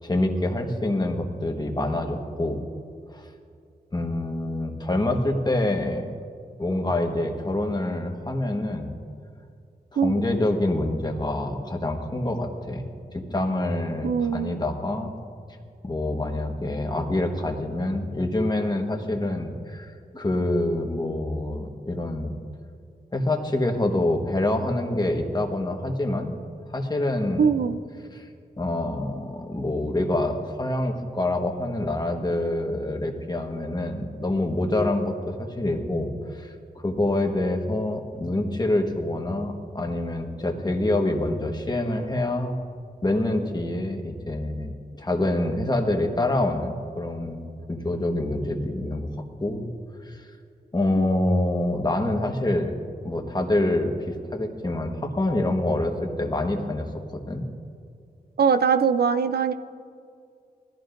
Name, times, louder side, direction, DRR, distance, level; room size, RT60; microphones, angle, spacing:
voice 1, 0.0-2.6 3.1-3.3 3.9-6.0 6.6-8.9 9.9-12.8 13.1-15.1 15.8-22.3 23.1-26.4 26.7-27.5 28.1-28.3 28.6-36.5 36.8-42.5 43.0-49.6 50.1-50.2 50.7-52.7 53.0-57.5, left 1 dB, 25° left, 3 dB, 1.3 m, -26 dB
voice 2, 14.0-14.6 27.4-27.8 51.0-51.1 58.4-59.5, right 6 dB, 75° right, 11 dB, 0.5 m, -22 dB
20.5 x 14.0 x 2.6 m, 2.3 s
wide cardioid pair, 105°, 17 cm